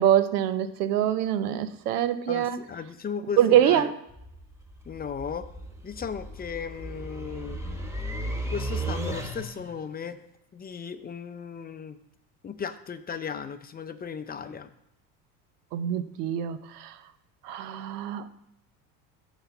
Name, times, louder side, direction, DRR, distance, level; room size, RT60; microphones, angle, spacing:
voice 1, 0.0-2.6 3.4-3.9 15.7-16.9 17.4-18.2, right 10 dB, 90° right, 12 dB, 0.8 m, -24 dB
voice 2, 2.3-3.9 4.9-5.5 5.8-7.6 8.5-10.2 10.5-12.0 12.4-14.7, left 6 dB, 20° left, 10 dB, 0.5 m, -36 dB
sound 1, 4.1-9.8, right 1 dB, 5° right, 1.4 m, -35 dB
9.3 x 4.1 x 7.1 m, 0.83 s
supercardioid pair, 95°, 45 cm